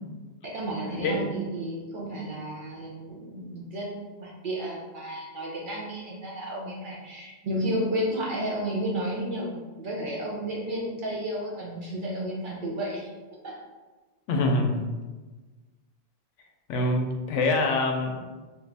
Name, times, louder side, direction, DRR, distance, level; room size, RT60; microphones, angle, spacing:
voice 1, 0.5-13.1 13.4-13.6, right 1 dB, 50° right, -5 dB, 0.8 m, -32 dB
voice 2, 14.3-14.9 16.7-18.2, left 2 dB, 90° left, 2 dB, 0.9 m, -25 dB
3.1 x 2.4 x 3.3 m, 1.2 s
omnidirectional pair, 1.2 m